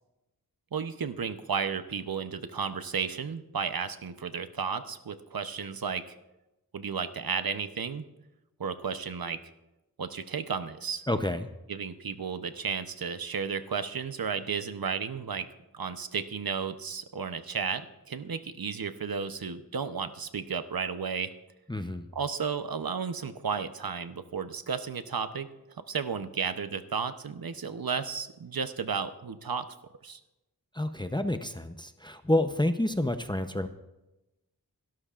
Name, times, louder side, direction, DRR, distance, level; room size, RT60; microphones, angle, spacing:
voice 1, 0.7-6.0 6.7-8.0 8.6-9.4 10.0-11.0 11.7-15.5 15.7-21.3 22.1-25.5 25.9-29.7 30.0-30.2, right 6 dB, 70° right, 10 dB, 0.9 m, -33 dB
voice 2, 11.1-11.5 21.7-22.1 30.7-33.7, left 1 dB, 10° left, 8 dB, 0.7 m, -29 dB
28.0 x 12.5 x 2.5 m, 0.98 s
wide cardioid pair, 45°, 36 cm